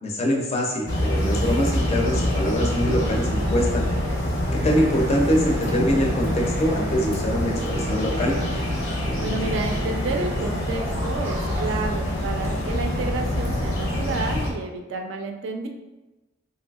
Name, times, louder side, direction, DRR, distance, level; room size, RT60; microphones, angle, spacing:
voice 1, 0.0-3.9 4.5-8.3, equal, 30° left, 0 dB, 0.4 m, -24 dB
sound 1, 0.9-14.5, left 1 dB, 85° left, 0.7 m, -25 dB
sound 2, 4.5-11.7, right 1 dB, 15° right, 0.6 m, -37 dB
voice 2, 9.2-15.7, right 3 dB, 65° right, 4 dB, 0.4 m, -30 dB
3.2 x 2.6 x 2.3 m, 1.1 s
head